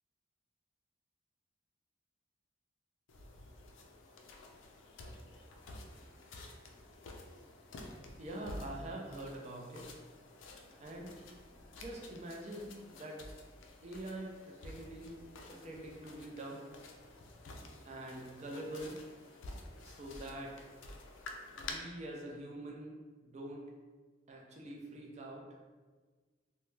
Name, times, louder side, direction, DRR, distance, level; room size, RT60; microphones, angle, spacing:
sound 1, 3.1-21.7, left 2 dB, 75° left, 0.4 m, -51 dB
voice 1, 8.2-9.8 10.8-11.1 11.7-13.2 13.8-15.2 15.5-16.7 17.8-19.0 19.8-20.6 21.6-23.6 24.3-25.4, right 1 dB, 35° right, -1 dB, 0.5 m, -45 dB
2.8 x 2.1 x 3.2 m, 1.4 s
head